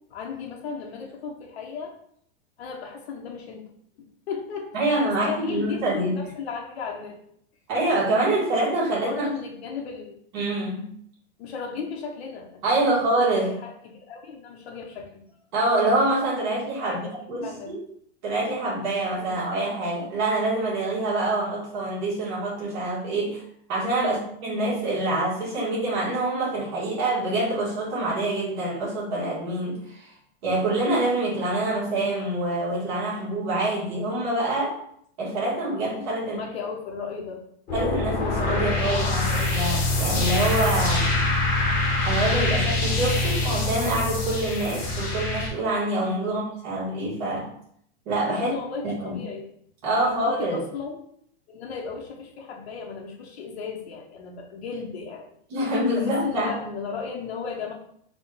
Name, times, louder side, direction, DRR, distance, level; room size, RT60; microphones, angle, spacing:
voice 1, 0.1-1.9 2.6-3.6 4.3-7.3 8.9-10.1 11.4-13.0 13.3-15.2 16.9-17.0 17.4-17.7 19.2-19.4 23.9-24.3 36.2-37.4 38.5-39.8 46.2-46.3 48.3-49.5 49.8-51.0 51.5-55.2 55.9-57.7, left 5 dB, 80° left, 0 dB, 1.0 m, -35 dB
voice 2, 4.7-6.1 7.7-9.3 10.3-10.9 12.6-13.6 15.5-17.8 18.2-23.4 23.7-30.1 30.4-34.8 35.2-36.4 37.7-41.1 42.0-47.5 48.0-48.5 48.8-49.2 49.8-50.6 55.5-56.5, right 2 dB, 45° right, -6 dB, 1.7 m, -26 dB
sound 1, 37.7-45.5, left 2 dB, 25° left, 1.0 m, -24 dB
4.4 x 2.4 x 4.6 m, 0.67 s
supercardioid pair, 165°, 31 cm